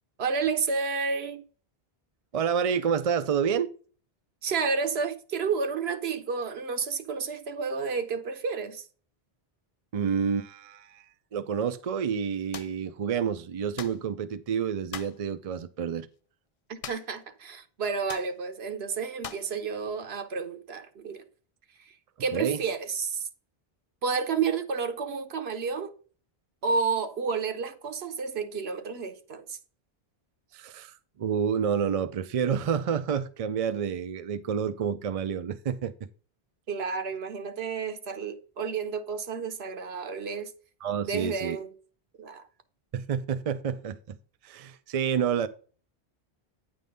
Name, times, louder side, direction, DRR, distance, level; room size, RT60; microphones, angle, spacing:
voice 1, 0.2-1.4 4.4-8.9 16.7-21.2 21.9-22.0 22.2-23.3 24.0-25.9 26.6-29.6 36.7-40.5 41.1-41.7 42.2-42.4, right 5 dB, 85° right, 1.2 m, -31 dB
voice 2, 2.3-3.7 9.9-16.1 22.3-22.6 30.5-35.9 40.8-41.6 42.9-44.2 44.4-45.5, right 7 dB, 50° right, 0.4 m, -29 dB
sound 1, 12.5-12.8 13.8-14.0 14.9-15.2 16.8-17.2 17.5-17.6 18.1-18.3 19.2-19.5, left 7 dB, 45° left, 0.5 m, -40 dB
9.2 x 3.8 x 5.2 m
omnidirectional pair, 1.0 m